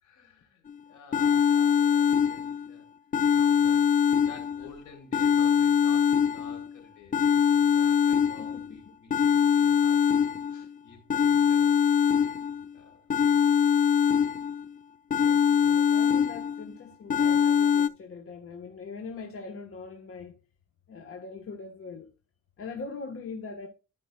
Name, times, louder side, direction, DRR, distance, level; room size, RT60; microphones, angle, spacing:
voice 1, 0.0-2.9 3.3-12.4 12.7-13.1, left 4 dB, 80° left, 4.2 m, -52 dB
sound 1, 0.7-0.8 1.1-2.7 3.1-4.7 5.1-6.7 7.1-8.7 9.1-10.7 11.1-12.7 13.1-14.7 15.1-16.7 17.1-17.9, left 7 dB, 30° left, 0.4 m, -23 dB
voice 2, 8.4-8.8 9.1-9.2 15.1-20.4 20.9-22.1 22.6-23.7, left 4 dB, 45° left, 1.4 m, -41 dB
13.0 x 5.2 x 2.3 m
cardioid pair, 90°, 30 cm